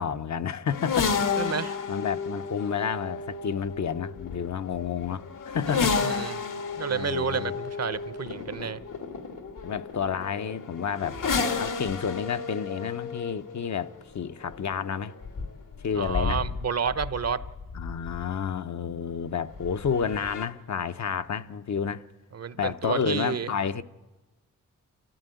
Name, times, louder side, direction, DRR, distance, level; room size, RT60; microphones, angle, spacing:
voice 1, 0.0-1.5 1.9-6.2 6.9-7.5 9.6-11.2 11.6-15.1 15.8-16.4 17.7-22.1 22.6-23.8, left 7 dB, 60° left, 0.9 m, -30 dB
sound 1, 0.7-18.4 19.5-20.5, left 5 dB, 80° left, 2.0 m, -32 dB
voice 2, 1.4-1.8 5.7-6.4 6.8-8.8 15.9-17.4 22.3-23.5, right 6 dB, 50° right, 0.8 m, -30 dB
28.5 x 14.0 x 9.1 m
cardioid pair, 80°, 32 cm